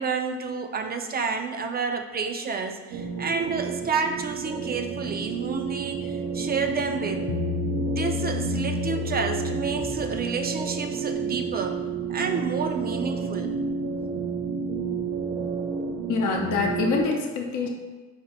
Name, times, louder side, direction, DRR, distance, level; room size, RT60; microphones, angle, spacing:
voice 1, 0.0-7.3 7.8-11.8 12.1-13.5, right 5 dB, 30° right, 6 dB, 0.4 m, -30 dB
sound 1, 2.9-17.0, right 5 dB, 80° right, 0.6 m, -30 dB
Bass guitar, 7.3-10.7, left 8 dB, 35° left, 0.4 m, -32 dB
voice 2, 16.1-17.7, left 4 dB, 85° left, 1 dB, 0.7 m, -25 dB
4.2 x 2.5 x 4.0 m, 1.3 s
cardioid pair, 90°, 30 cm